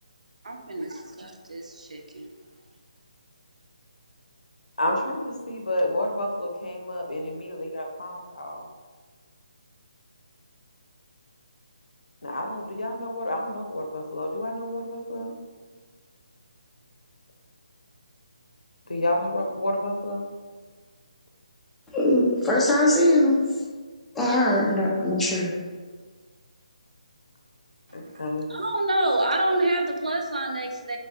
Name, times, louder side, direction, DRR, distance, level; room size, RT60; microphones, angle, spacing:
voice 1, 0.4-0.9 1.2-2.3 28.5-31.0, right 1 dB, 80° right, 2 dB, 0.5 m, -27 dB
voice 2, 4.8-8.7 12.2-15.4 18.9-20.2 25.1-25.7 27.9-28.5, left 1 dB, 90° left, 1 dB, 0.5 m, -30 dB
voice 3, 21.9-23.4 24.1-25.5, left 1 dB, 5° left, -6 dB, 0.4 m, -21 dB
3.1 x 2.3 x 2.7 m, 1.5 s
figure-of-eight pair, 155°, 4 cm